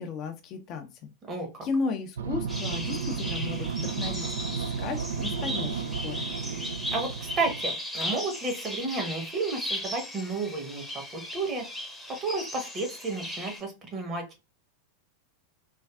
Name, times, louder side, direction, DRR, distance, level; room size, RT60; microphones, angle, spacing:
voice 1, 0.0-1.1 1.6-6.3, left 4 dB, 35° left, 5 dB, 0.4 m, -35 dB
voice 2, 1.2-1.7 6.9-11.6 12.1-14.4, right 3 dB, 25° right, 3 dB, 0.9 m, -32 dB
sound 1, 2.2-7.6, right 6 dB, 65° right, 0.3 m, -33 dB
sound 2, 2.5-13.6, left 1 dB, ahead, 0.7 m, -37 dB
3.3 x 2.3 x 2.3 m, 0.28 s
figure-of-eight pair, 90°, 0 cm